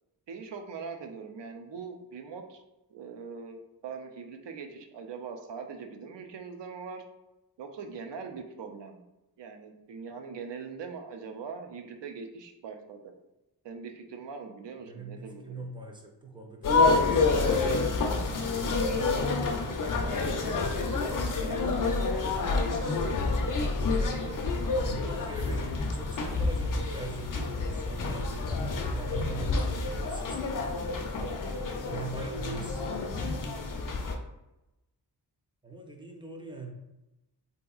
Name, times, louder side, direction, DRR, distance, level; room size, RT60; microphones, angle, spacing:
voice 1, 0.3-2.6 2.9-7.1 7.6-9.0 9.4-13.0 13.6-15.6 18.5-18.8 31.2-31.4, right 5 dB, 90° right, 5 dB, 0.5 m, -42 dB
voice 2, 14.8-17.1 17.5-18.2 19.9-21.8 23.8-30.5 31.8-33.5 35.6-36.7, right 2 dB, 10° right, 1 dB, 0.4 m, -42 dB
sound 1, 16.6-34.2, left 3 dB, 50° left, 0.5 m, -28 dB
3.5 x 2.8 x 2.3 m, 0.97 s
wide cardioid pair, 115°, 41 cm